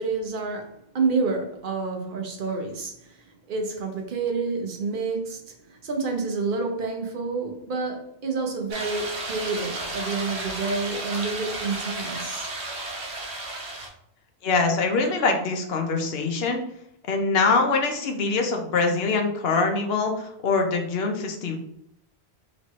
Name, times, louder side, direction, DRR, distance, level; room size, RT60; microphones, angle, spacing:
voice 1, 0.0-12.5, right 4 dB, 55° right, 2 dB, 0.9 m, -29 dB
sound 1, 8.7-13.9, right 2 dB, 80° right, 1.2 m, -33 dB
voice 2, 14.4-16.6 17.1-21.6, left 4 dB, 75° left, 3 dB, 0.9 m, -24 dB
4.1 x 3.1 x 3.0 m, 0.74 s
omnidirectional pair, 1.1 m